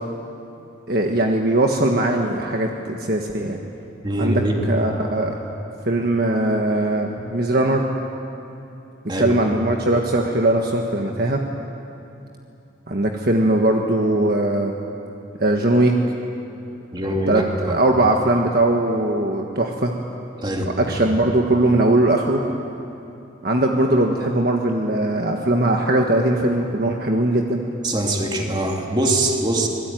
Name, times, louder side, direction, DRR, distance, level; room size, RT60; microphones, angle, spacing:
voice 1, 0.9-3.6 4.2-5.4 5.8-7.9 9.2-11.4 12.9-14.7 15.4-15.9 17.3-19.9 20.6-22.4 23.4-27.6, right 1 dB, 50° right, 1 dB, 1.5 m, -20 dB
voice 2, 4.0-4.6 9.1-9.3 16.9-17.8 20.4-20.7 21.0-21.2 27.8-29.7, right 1 dB, 20° right, 0 dB, 2.9 m, -23 dB
26.5 x 20.5 x 9.4 m, 2.9 s
head